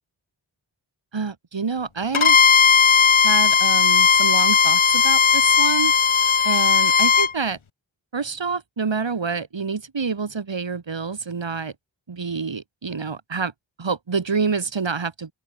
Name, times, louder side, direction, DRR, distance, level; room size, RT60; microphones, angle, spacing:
voice 1, 1.1-2.4 3.2-5.9 6.4-7.6 8.1-11.7 12.1-13.5 13.8-15.3, right 5 dB, 65° right, 4.7 m, -27 dB
Bowed string instrument, 2.1-7.3, left 6 dB, 85° left, 2.9 m, -16 dB
open air
cardioid pair, 55°, 47 cm